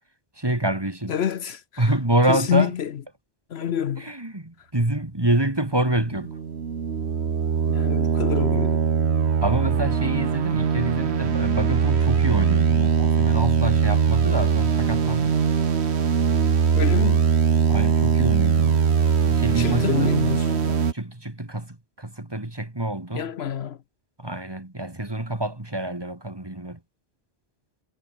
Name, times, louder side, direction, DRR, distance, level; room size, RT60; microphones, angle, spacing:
voice 1, 0.4-1.2 1.8-2.7 4.0-6.3 9.4-15.4 17.7-18.8 19.2-20.2 20.9-23.2 24.2-26.8, right 1 dB, 20° right, 2.2 m, -27 dB
voice 2, 1.1-1.9 2.3-2.9 3.5-4.1 7.7-8.9 16.7-17.3 19.5-20.9 23.1-23.8, left 9 dB, 70° left, 1.0 m, -27 dB
sound 1, 5.7-20.9, right 6 dB, 70° right, 1.5 m, -21 dB
omnidirectional pair, 1.1 m